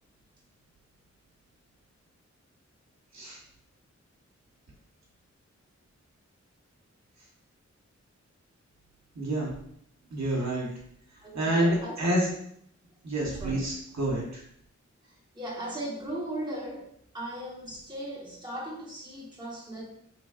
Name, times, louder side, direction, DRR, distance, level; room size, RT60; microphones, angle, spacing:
voice 1, 9.1-9.5 10.1-10.7 11.3-12.3 13.0-14.4, right 1 dB, 70° right, -4 dB, 1.2 m, -28 dB
voice 2, 11.2-12.1 13.4-13.6 15.3-16.9 17.1-19.8, right 1 dB, 15° right, -5 dB, 1.2 m, -37 dB
3.9 x 3.0 x 2.4 m, 0.69 s
wide cardioid pair, 65°, 29 cm